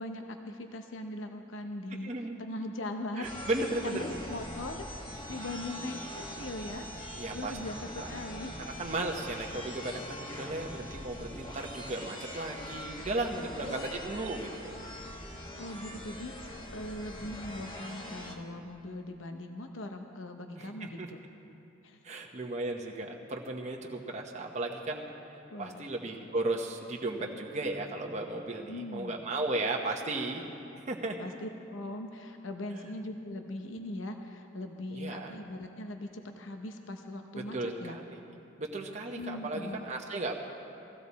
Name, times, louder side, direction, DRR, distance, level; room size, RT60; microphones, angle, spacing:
voice 1, 0.0-2.1 2.4-3.5 3.8-4.8 5.3-8.7 13.6-14.3 15.6-21.2 21.8-22.0 25.5-25.8 28.7-29.2 31.2-38.0 39.1-39.9, left 1 dB, 75° left, 5 dB, 0.8 m, -40 dB
voice 2, 2.0-2.4 3.2-4.0 7.1-7.6 8.0-8.1 8.7-14.7 20.6-21.1 22.0-25.1 25.6-30.4 30.9-31.2 34.9-35.3 37.4-38.2 38.6-40.4, right 2 dB, 35° right, 0 dB, 0.9 m, -35 dB
sound 1, 3.2-18.4, left 1 dB, 25° left, 1.3 m, -43 dB
16.5 x 15.5 x 4.1 m, 2.8 s
head